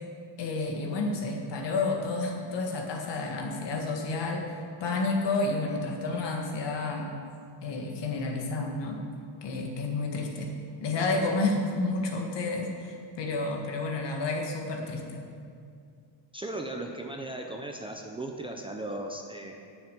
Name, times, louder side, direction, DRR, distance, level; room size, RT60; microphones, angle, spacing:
voice 1, 0.4-4.6 4.8-7.1 7.6-9.0 9.4-10.5 10.8-15.2, left 3 dB, 60° left, 2 dB, 1.8 m, -30 dB
voice 2, 16.3-19.5, right 1 dB, 10° right, 1 dB, 0.6 m, -37 dB
9.6 x 7.2 x 8.4 m, 2.3 s
cardioid pair, 165°, 47 cm